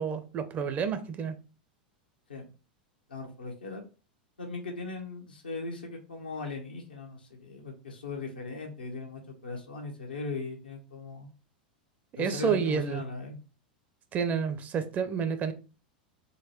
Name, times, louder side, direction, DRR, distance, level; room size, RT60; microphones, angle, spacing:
voice 1, 0.0-1.4 12.2-13.0 14.1-15.5, right 6 dB, 35° right, 0.5 m, -29 dB
voice 2, 3.1-3.8 4.4-11.3 12.1-13.4, left 3 dB, 85° left, 0.9 m, -39 dB
3.8 x 2.2 x 3.0 m
hypercardioid pair, 90°, 5 cm